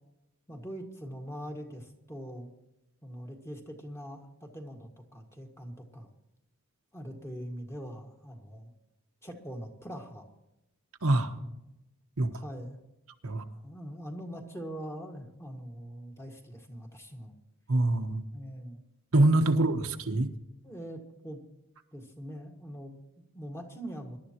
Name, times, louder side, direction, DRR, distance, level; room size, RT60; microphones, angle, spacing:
voice 1, 0.5-2.5 3.0-6.1 6.9-8.7 9.2-10.3 11.4-11.6 12.3-12.8 13.5-17.3 18.3-18.8 19.5-19.6 20.6-21.4 21.9-24.2, equal, 10° left, 1 dB, 1.8 m, -42 dB
voice 2, 11.0-11.3 12.2-12.3 13.2-13.4 17.7-18.2 19.1-20.3, right 2 dB, 75° right, 5 dB, 1.2 m, -24 dB
22.0 x 12.0 x 3.0 m, 0.90 s
head